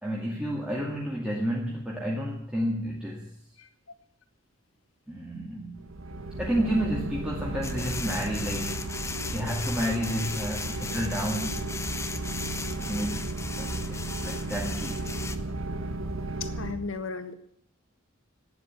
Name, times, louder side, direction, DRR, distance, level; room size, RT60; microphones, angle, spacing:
voice 1, 0.0-3.3 5.1-5.9 6.4-8.9 9.3-11.6 12.7-13.3 13.6-15.0, equal, 5° right, -4 dB, 2.2 m, -31 dB
sound 1, 5.8-16.7, right 2 dB, 85° right, 1.7 m, -34 dB
sound 2, 7.6-15.4, left 4 dB, 15° left, 0.8 m, -37 dB
voice 2, 16.4-17.3, left 4 dB, 80° left, 9 dB, 1.6 m, -34 dB
12.0 x 9.8 x 10.0 m, 0.68 s
head